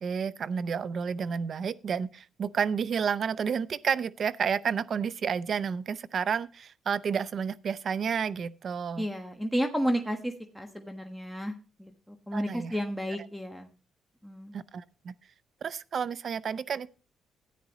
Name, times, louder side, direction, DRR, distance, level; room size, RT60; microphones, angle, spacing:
voice 1, 0.0-9.0 12.3-12.7 14.5-15.1 15.6-16.9, right 6 dB, 55° right, 0.5 m, -31 dB
voice 2, 9.0-13.7 14.2-14.5, equal, 5° right, 1.3 m, -32 dB
13.5 x 9.5 x 3.0 m
cardioid pair, 70°, 0 cm